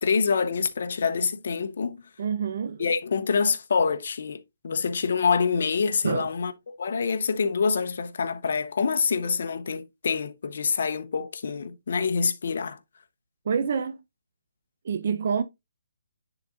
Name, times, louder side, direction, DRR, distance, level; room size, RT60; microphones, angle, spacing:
voice 1, 0.0-2.0 2.8-4.4 4.6-6.5 6.8-12.8, left 5 dB, 60° left, 0.9 m, -26 dB
voice 2, 2.2-2.9 6.0-6.3 13.5-14.0 14.8-15.4, right 6 dB, 50° right, 0.5 m, -27 dB
10.0 x 3.9 x 2.4 m
hypercardioid pair, 160°, 0 cm